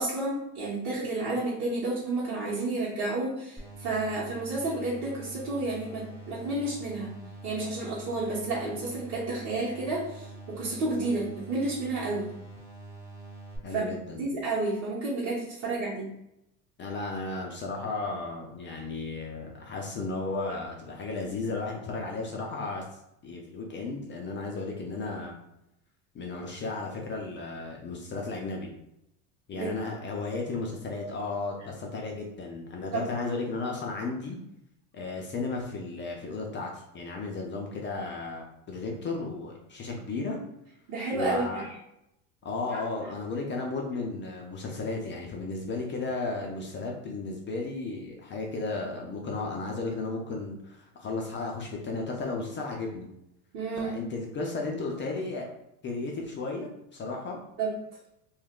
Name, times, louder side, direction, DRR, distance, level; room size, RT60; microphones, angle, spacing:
voice 1, 0.0-7.1 7.4-12.3 13.7-13.8 14.2-16.1 29.5-29.7 32.9-33.0 40.9-41.8 42.7-42.8 53.5-53.9 57.6-57.7, right 2 dB, 40° right, -8 dB, 0.9 m, -31 dB
sound 1, 3.6-13.6, right 2 dB, 5° right, 0.7 m, -45 dB
voice 2, 13.6-14.2 16.8-22.8 23.2-25.4 26.1-28.7 29.5-34.4 34.9-40.4 41.1-41.6 42.4-53.1 53.8-55.5 55.8-57.4, left 3 dB, 25° left, 0 dB, 0.3 m, -34 dB
2.3 x 2.2 x 3.5 m, 0.84 s
supercardioid pair, 100°, 48 cm